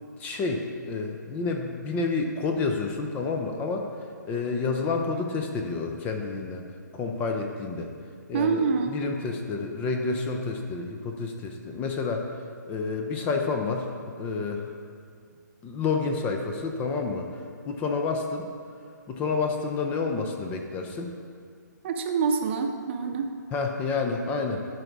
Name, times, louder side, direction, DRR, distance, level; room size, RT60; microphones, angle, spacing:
voice 1, 0.2-3.9 4.2-6.7 6.9-7.9 8.3-14.7 15.6-18.5 19.1-21.1 23.5-24.7, left 4 dB, 15° left, 3 dB, 0.5 m, -29 dB
voice 2, 8.3-9.0 21.8-23.3, right 5 dB, 35° right, 5 dB, 0.7 m, -26 dB
11.5 x 4.0 x 4.7 m, 2.2 s
hypercardioid pair, 145°, 10 cm